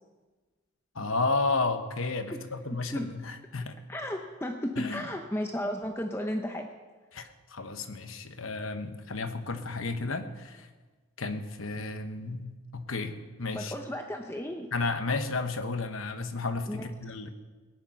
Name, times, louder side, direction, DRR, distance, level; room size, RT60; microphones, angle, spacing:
voice 1, 0.9-3.8 4.8-5.0 7.1-10.7 11.2-13.7 14.7-17.3, left 3 dB, 75° left, 8 dB, 1.1 m, -32 dB
voice 2, 3.9-6.7 13.5-14.7 16.7-16.9, left 1 dB, 10° left, 3 dB, 0.7 m, -34 dB
18.0 x 10.5 x 5.8 m, 1.3 s
head